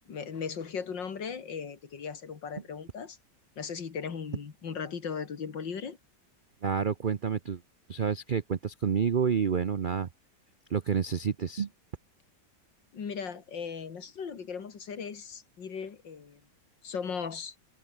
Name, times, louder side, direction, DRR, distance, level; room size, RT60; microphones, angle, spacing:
voice 1, 0.1-3.2 3.6-6.0 12.9-16.4 16.8-17.5, left 6 dB, 85° left, 2.9 m, -37 dB
voice 2, 6.6-7.6 7.9-10.1 10.7-11.7, right 7 dB, 65° right, 0.5 m, -29 dB
omnidirectional pair, 1.9 m